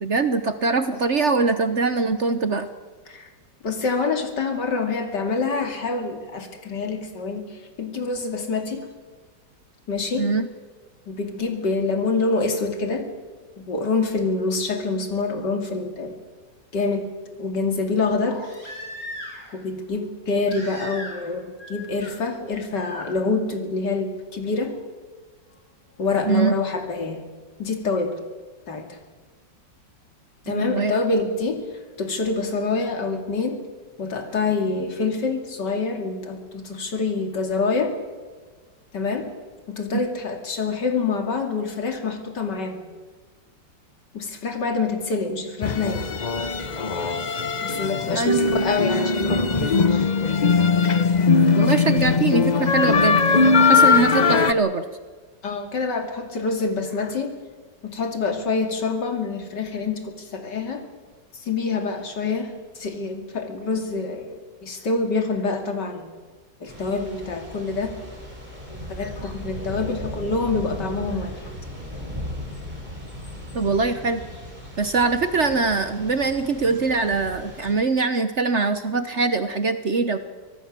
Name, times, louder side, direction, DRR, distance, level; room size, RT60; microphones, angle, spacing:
voice 1, 0.0-2.7 10.2-10.5 26.3-26.5 30.5-31.0 48.1-48.4 51.5-54.8 73.5-74.2 74.8-80.2, right 4 dB, 45° right, 10 dB, 1.1 m, -22 dB
voice 2, 3.6-8.9 9.9-10.3 11.1-13.1 13.6-16.1 16.7-17.1 17.4-18.4 19.5-24.8 26.0-27.2 27.6-28.2 28.7-29.0 30.5-31.6 32.0-33.6 34.0-37.9 38.9-39.3 39.7-42.8 44.1-46.1 47.6-50.1 55.4-57.4 57.8-60.9 61.3-66.1 66.6-67.9 68.7-71.5, left 4 dB, 70° left, 5 dB, 3.1 m, -26 dB
Crying sobbing, 18.2-19.6 20.5-21.3 21.6-22.1 22.7-23.1 24.7-24.8, left 1 dB, 50° left, 8.2 m, -38 dB
sound 1, 45.6-54.5, left 4 dB, 35° left, 0.8 m, -20 dB
Thunder / Rain, 66.7-77.7, left 1 dB, 25° right, 5.5 m, -37 dB
24.5 x 17.5 x 7.6 m, 1.4 s
omnidirectional pair, 1.9 m